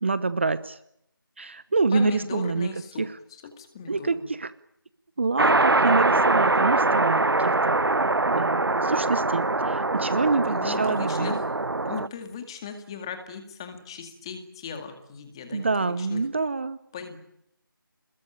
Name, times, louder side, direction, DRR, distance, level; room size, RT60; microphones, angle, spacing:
voice 1, 0.0-0.8 1.4-2.7 3.0-3.2 3.9-4.5 5.2-7.8 8.3-11.4 15.5-16.8, right 4 dB, 30° right, 15 dB, 1.0 m, -26 dB
voice 2, 1.9-3.0 3.3-4.2 10.4-11.5 11.9-16.2 16.9-17.2, left 6 dB, 15° left, 7 dB, 2.1 m, -38 dB
sound 1, 5.4-12.1, right 2 dB, 80° right, 1.0 m, -23 dB
28.5 x 21.5 x 8.7 m, 0.78 s
figure-of-eight pair, 170°, 12 cm